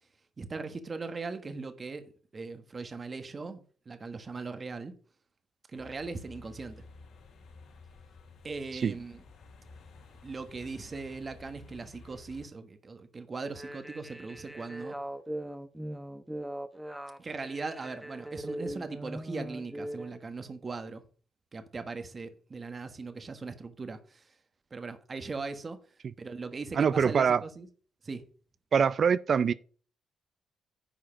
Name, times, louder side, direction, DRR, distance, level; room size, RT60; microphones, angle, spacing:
voice 1, 0.4-2.1 2.3-4.9 5.7-6.8 8.4-9.2 10.2-15.0 17.2-21.0 21.5-24.3 24.7-25.8 26.2-27.7 28.0-28.2, right 4 dB, 35° right, 1.4 m, -39 dB
sound 1, 5.7-12.5, left 3 dB, 85° left, 3.5 m, -52 dB
sound 2, 13.5-20.2, right 1 dB, 5° right, 0.8 m, -40 dB
voice 2, 26.8-27.4 28.7-29.5, right 6 dB, 50° right, 0.4 m, -24 dB
10.5 x 4.8 x 6.2 m
cardioid pair, 110°, 0 cm